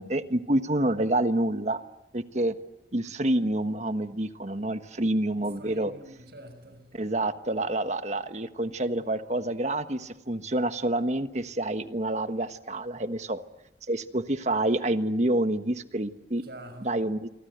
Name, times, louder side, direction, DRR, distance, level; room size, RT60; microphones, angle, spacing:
voice 1, 0.0-1.8 2.1-2.5 2.9-5.9 6.9-13.4 13.9-16.4 16.8-17.3, right 1 dB, 40° right, 1.4 m, -28 dB
voice 2, 5.4-6.9 16.4-17.0, right 1 dB, 65° right, 5.9 m, -46 dB
28.0 x 24.0 x 8.1 m
head